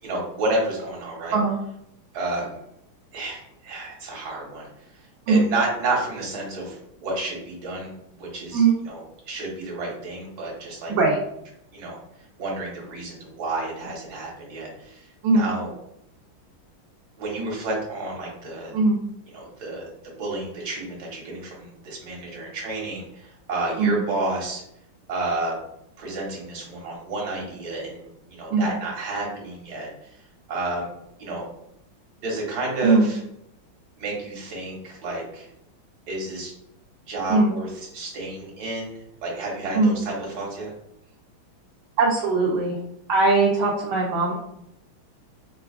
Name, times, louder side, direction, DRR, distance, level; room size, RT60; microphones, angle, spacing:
voice 1, 0.0-1.3 2.1-2.5 3.1-4.7 4.9-5.0 5.3-7.9 8.2-9.0 9.3-10.9 11.7-12.0 12.4-15.7 17.2-18.7 19.3-19.9 20.2-24.6 25.1-25.5 26.0-30.1 30.5-30.9 31.2-31.4 32.2-33.2 34.0-35.5 36.1-36.5 37.0-38.9 39.2-40.7, right 2 dB, 55° right, -3 dB, 1.5 m, -30 dB
voice 2, 42.0-42.8 43.1-44.3, right 3 dB, 75° right, -3 dB, 1.2 m, -20 dB
4.7 x 2.3 x 2.3 m, 0.79 s
omnidirectional pair, 2.3 m